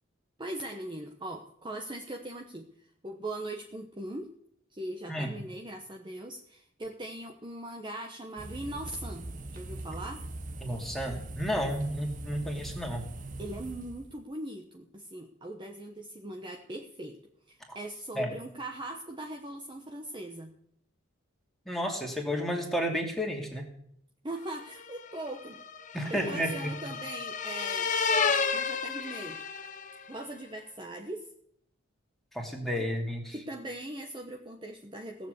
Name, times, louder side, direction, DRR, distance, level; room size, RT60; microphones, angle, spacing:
voice 1, 0.4-2.7 3.0-4.3 4.7-10.2 13.4-17.2 17.5-20.5 24.2-25.6 26.1-27.9 28.5-29.4 30.1-31.3 33.3-35.3, right 1 dB, 25° right, 2 dB, 1.1 m, -40 dB
sound 1, 8.4-14.2, right 2 dB, 40° right, 1.2 m, -41 dB
voice 2, 10.6-13.0 18.2-18.3 21.7-23.7 25.9-26.7 32.3-33.3, equal, ahead, 0 dB, 2.6 m, -31 dB
sound 2, 24.6-30.1, left 5 dB, 40° left, 0.9 m, -32 dB
17.0 x 7.2 x 8.1 m, 0.67 s
head